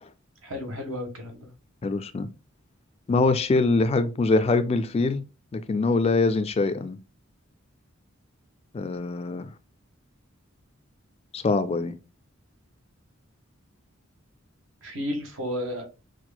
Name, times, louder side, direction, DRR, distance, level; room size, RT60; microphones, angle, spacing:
voice 1, 0.4-1.5 14.8-15.9, left 1 dB, 70° right, 1.4 m, -32 dB
voice 2, 1.8-2.3 3.1-5.2 5.5-7.0 8.7-9.5 11.3-12.0, left 3 dB, 30° left, 0.3 m, -23 dB
6.0 x 2.5 x 2.2 m
head